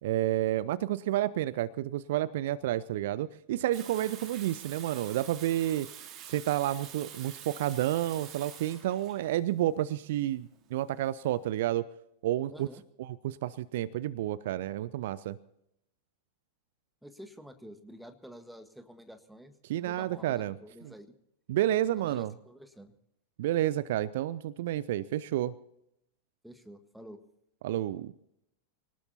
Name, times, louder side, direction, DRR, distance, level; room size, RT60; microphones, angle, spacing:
voice 1, 0.0-5.9 6.3-11.9 12.2-12.7 13.0-15.4 19.7-20.5 21.5-22.3 23.4-25.5 27.6-28.1, right 13 dB, 55° right, 19 dB, 0.5 m, -30 dB
Water tap faucet / Sink (filling or washing), 3.7-11.4, right 10 dB, 35° right, 2.7 m, -47 dB
voice 2, 12.5-12.8 17.0-19.5 19.8-21.1 21.9-22.9 26.4-27.2, equal, ahead, 7 dB, 1.6 m, -49 dB
25.5 x 19.0 x 2.8 m, 0.80 s
figure-of-eight pair, 90°, 0 cm